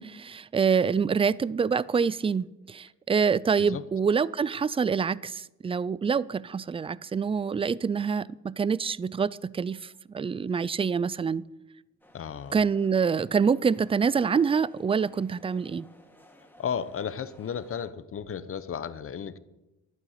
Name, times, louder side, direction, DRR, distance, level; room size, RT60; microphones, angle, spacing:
voice 1, 0.0-11.4 12.5-15.9, right 6 dB, 20° right, 0.4 m, -26 dB
sound 1, 12.0-17.9, equal, 5° left, 2.4 m, -56 dB
voice 2, 12.1-12.6 16.6-19.4, left 7 dB, 45° left, 0.9 m, -34 dB
11.5 x 9.5 x 8.1 m
cardioid pair, 90°, 30 cm